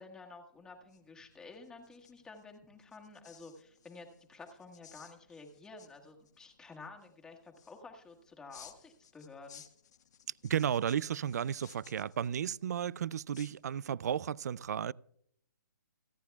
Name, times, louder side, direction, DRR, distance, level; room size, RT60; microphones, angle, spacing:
voice 1, 0.0-9.6, left 3 dB, 5° left, 1.5 m, -51 dB
sound 1, 0.5-14.1, left 8 dB, 60° left, 1.4 m, -60 dB
voice 2, 10.4-14.9, right 9 dB, 55° right, 0.4 m, -33 dB
29.0 x 9.8 x 2.3 m
hypercardioid pair, 155°, 10 cm